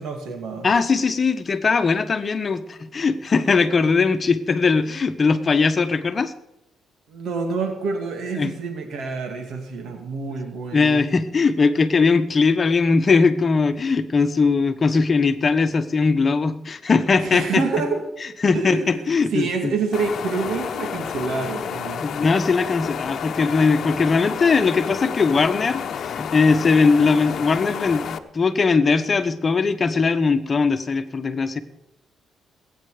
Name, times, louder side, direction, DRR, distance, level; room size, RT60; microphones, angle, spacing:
voice 1, 0.0-0.7 7.1-11.0 17.2-18.0 18.5-22.0, right 4 dB, 70° right, 4 dB, 2.5 m, -27 dB
voice 2, 0.6-6.3 8.4-8.5 10.7-17.6 18.4-19.7 22.0-31.6, left 4 dB, 35° left, 10 dB, 1.2 m, -20 dB
sound 1, 19.9-28.2, left 8 dB, 60° left, 1.0 m, -30 dB
20.0 x 9.1 x 5.1 m, 0.90 s
cardioid pair, 90°, 0 cm